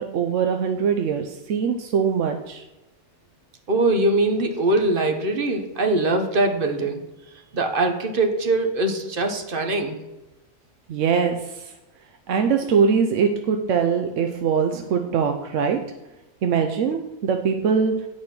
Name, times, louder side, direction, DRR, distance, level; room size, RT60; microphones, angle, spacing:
voice 1, 0.0-2.6 10.9-11.4 12.3-15.8 16.4-17.9, right 6 dB, 75° right, 5 dB, 1.0 m, -22 dB
voice 2, 3.7-7.0 7.5-10.0, right 2 dB, 45° right, 5 dB, 1.0 m, -22 dB
8.6 x 5.1 x 5.8 m, 0.98 s
omnidirectional pair, 1.3 m